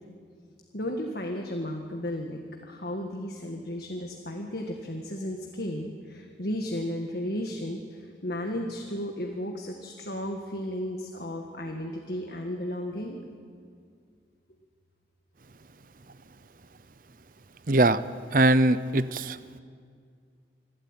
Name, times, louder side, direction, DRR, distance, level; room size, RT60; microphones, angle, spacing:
voice 1, 0.7-13.2, left 1 dB, 60° left, 2 dB, 1.7 m, -34 dB
voice 2, 17.7-18.0 18.3-19.6, right 2 dB, 50° right, 14 dB, 0.7 m, -22 dB
25.5 x 12.5 x 9.1 m, 2.2 s
head